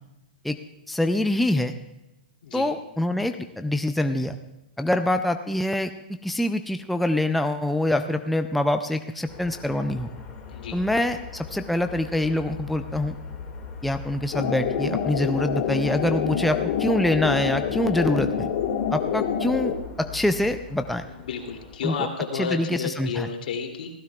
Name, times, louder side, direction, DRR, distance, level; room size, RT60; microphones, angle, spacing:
voice 1, 0.9-1.7 2.5-4.4 4.8-5.9 6.2-10.1 10.7-13.2 13.8-18.5 18.9-21.1 21.8-22.1 22.3-23.3, left 1 dB, ahead, 7 dB, 0.4 m, -25 dB
sound 1, 9.3-21.8, left 5 dB, 20° left, 2.1 m, -40 dB
sound 2, 14.3-19.7, left 7 dB, 50° left, 1.6 m, -27 dB
voice 2, 21.3-23.9, left 6 dB, 70° left, 2 dB, 2.8 m, -31 dB
19.5 x 15.5 x 2.4 m, 0.93 s
hypercardioid pair, 145°, 5 cm